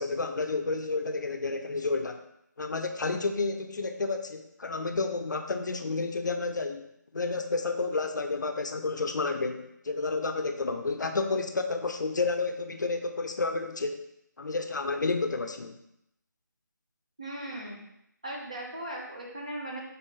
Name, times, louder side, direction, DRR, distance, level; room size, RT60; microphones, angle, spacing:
voice 1, 0.0-2.2 2.6-6.8 7.1-14.0 14.4-15.8, left 3 dB, 70° left, 6 dB, 0.5 m, -30 dB
voice 2, 17.2-17.8 18.2-19.8, right 1 dB, 20° right, -2 dB, 0.4 m, -38 dB
3.8 x 3.5 x 2.8 m, 0.78 s
figure-of-eight pair, 175°, 10 cm